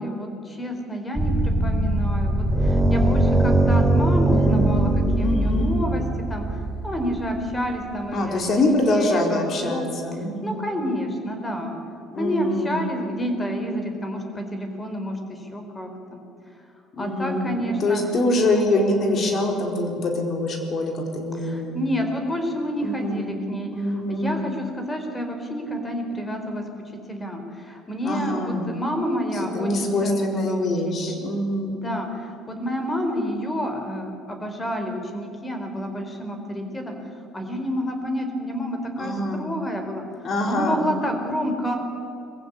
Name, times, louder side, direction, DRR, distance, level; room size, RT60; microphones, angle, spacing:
voice 1, 0.0-6.4 6.8-9.9 10.4-11.8 12.2-16.2 17.0-18.0 18.5-18.7 21.4-26.6 27.1-31.2 31.7-36.9 37.3-40.0 40.5-41.7, equal, 20° left, 5 dB, 4.5 m, -29 dB
sound 1, 1.2-7.7, right 1 dB, 10° right, 3.1 m, -21 dB
voice 2, 4.3-5.8 8.1-10.6 12.1-12.8 16.9-21.7 22.8-23.4 23.7-24.4 28.0-28.7 29.5-31.8 39.0-39.5 40.2-40.8, left 1 dB, 50° left, 3 dB, 4.5 m, -25 dB
22.0 x 15.0 x 9.8 m, 2.7 s
supercardioid pair, 80°, 0 cm